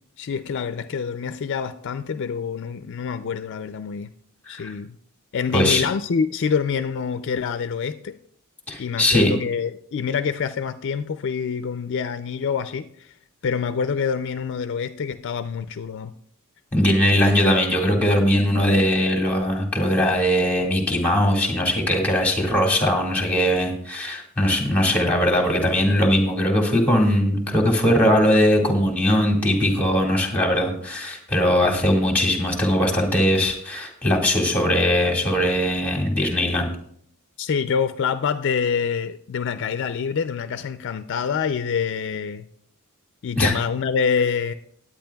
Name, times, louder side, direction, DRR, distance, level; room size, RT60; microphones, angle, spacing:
voice 1, 0.2-4.1 4.5-5.0 5.3-8.2 8.8-13.1 13.4-16.1 24.9-25.0 37.4-42.5 43.2-44.5, left 6 dB, 55° left, 10 dB, 0.4 m, -26 dB
voice 2, 5.5-5.8 8.7-9.3 16.7-36.7 43.4-43.5, equal, 5° left, 1 dB, 1.9 m, -20 dB
19.0 x 8.8 x 2.3 m, 0.66 s
head